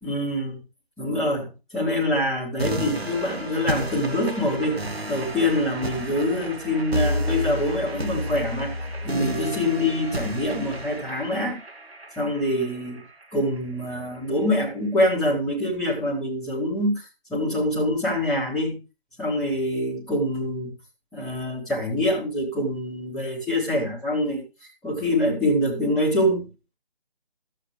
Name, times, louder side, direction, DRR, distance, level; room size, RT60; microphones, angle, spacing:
voice 1, 0.0-0.6 1.0-4.8 5.1-8.7 9.0-11.6 12.2-13.0 13.3-17.0 17.3-18.8 19.2-20.7 21.1-26.5, left 1 dB, ahead, -8 dB, 1.0 m, -25 dB
sound 1, 2.6-13.6, equal, 80° right, 1.5 m, -31 dB
12.5 x 7.4 x 3.1 m, 0.30 s
figure-of-eight pair, 150°, 30 cm